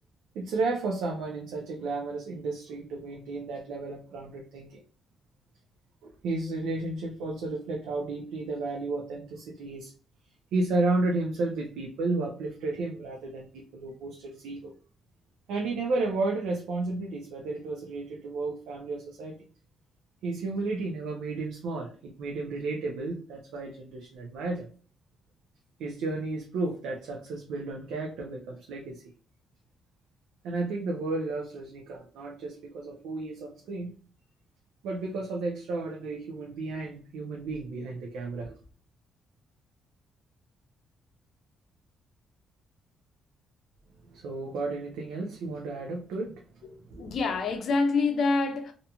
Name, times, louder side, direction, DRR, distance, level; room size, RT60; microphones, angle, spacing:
voice 1, 0.3-4.8 6.0-9.9 10.5-14.7 15.5-19.4 20.2-24.7 25.8-29.0 30.4-33.9 34.8-38.6 44.1-46.4 46.9-47.0, right 3 dB, 85° right, 0.5 m, -33 dB
voice 2, 47.0-48.7, left 4 dB, 60° left, 0.5 m, -26 dB
2.8 x 2.5 x 2.2 m
cardioid pair, 90°, 0 cm